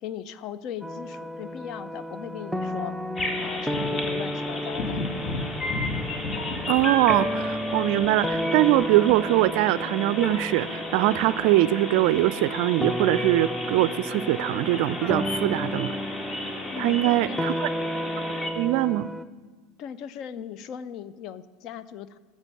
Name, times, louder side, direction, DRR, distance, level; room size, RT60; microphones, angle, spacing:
voice 1, 0.0-2.9 3.4-5.0 16.6-17.5 19.8-22.2, left 9 dB, 50° left, 15 dB, 0.5 m, -38 dB
sound 1, 0.8-19.2, equal, 5° left, 0.5 m, -33 dB
sound 2, 3.2-18.5, left 2 dB, 30° left, 1.8 m, -33 dB
voice 2, 6.7-15.9 16.8-17.7 18.6-19.1, right 16 dB, 60° right, 18 dB, 0.3 m, -22 dB
13.0 x 6.4 x 6.8 m, 1.3 s
hypercardioid pair, 75°, 0 cm